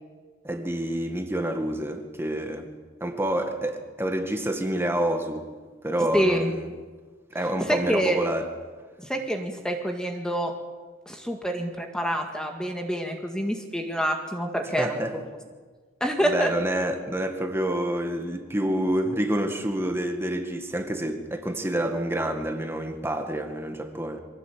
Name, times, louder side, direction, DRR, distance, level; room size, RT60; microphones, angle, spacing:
voice 1, 0.4-2.7 3.0-5.4 5.8-6.7 7.3-8.5 14.6-15.2 16.3-24.2, right 1 dB, 10° right, 2.0 m, -28 dB
voice 2, 6.1-6.5 7.7-8.2 9.0-10.5 11.1-15.0 16.0-16.5, right 1 dB, 5° left, 2.0 m, -27 dB
24.0 x 17.0 x 8.6 m
head